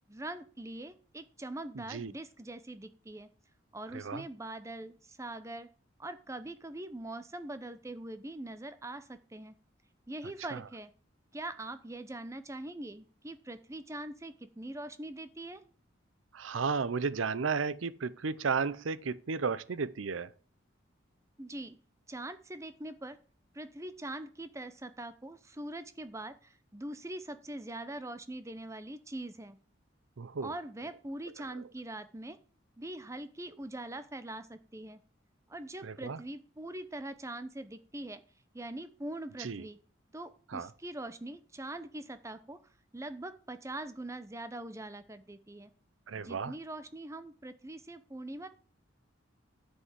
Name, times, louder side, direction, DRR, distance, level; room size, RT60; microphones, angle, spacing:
voice 1, 0.1-3.3 3.7-5.7 6.0-9.5 10.1-10.9 11.3-15.6 21.4-21.8 22.1-23.2 23.5-29.6 30.4-32.4 32.8-35.0 35.5-38.2 38.5-39.8 40.1-42.6 42.9-45.7 46.1-48.5, right 1 dB, 15° right, 0.7 m, -42 dB
voice 2, 16.3-20.3 30.2-30.5 35.8-36.2 39.4-39.6 40.5-40.7 46.1-46.5, right 5 dB, 85° right, 0.6 m, -33 dB
9.8 x 5.5 x 7.4 m
head